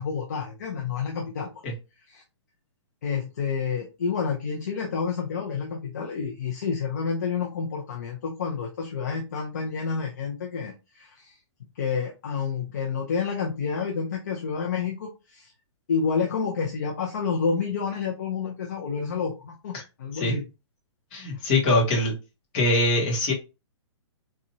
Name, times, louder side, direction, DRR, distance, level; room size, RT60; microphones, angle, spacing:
voice 1, 0.0-1.5 2.1-2.2 3.0-11.3 11.7-15.5 15.9-20.4 21.3-21.4, left 5 dB, 35° left, 0 dB, 0.6 m, -29 dB
voice 2, 21.1-22.1 22.5-23.3, left 2 dB, 20° left, -2 dB, 1.1 m, -23 dB
4.1 x 2.4 x 2.7 m, 0.27 s
hypercardioid pair, 175°, 15 cm